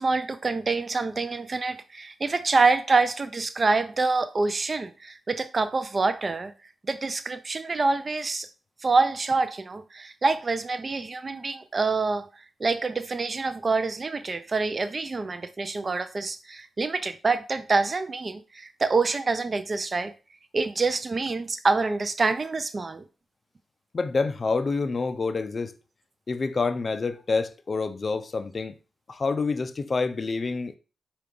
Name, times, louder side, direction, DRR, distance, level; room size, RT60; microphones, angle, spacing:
voice 1, 0.0-6.5 6.9-8.5 8.8-12.3 12.6-20.1 20.5-23.0, right 3 dB, 40° right, 0.3 m, -26 dB
voice 2, 23.9-25.7 26.3-28.8 29.1-30.7, left 4 dB, 45° left, 0.3 m, -27 dB
4.5 x 2.3 x 3.7 m
cardioid pair, 60°, 0 cm